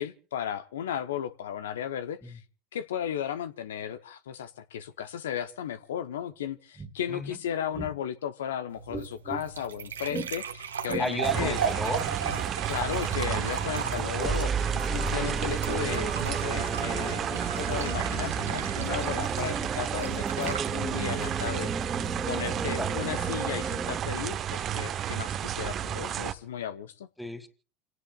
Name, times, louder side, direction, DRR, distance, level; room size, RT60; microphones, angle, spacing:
voice 1, 0.0-2.4 2.7-11.6 12.7-21.9 22.3-27.1, left 9 dB, 75° left, 11 dB, 0.9 m, -35 dB
sound 1, 6.3-6.4 6.7-6.9 7.7-7.9 8.9-9.4 10.1-10.3 10.9-11.1 11.3-11.5 12.2-12.4 14.2-24.0, right 3 dB, 20° right, 2.0 m, -34 dB
voice 2, 7.1-7.4 11.0-12.1 13.8-14.0 19.4-19.6 22.7-22.9 27.2-27.5, left 1 dB, 5° left, 9 dB, 2.7 m, -33 dB
sound 2, 8.7-23.7, right 7 dB, 85° right, 1.3 m, -38 dB
sound 3, 11.2-26.3, right 9 dB, 40° right, 1.0 m, -32 dB
29.0 x 18.0 x 2.4 m, 0.39 s
hypercardioid pair, 75°, 0 cm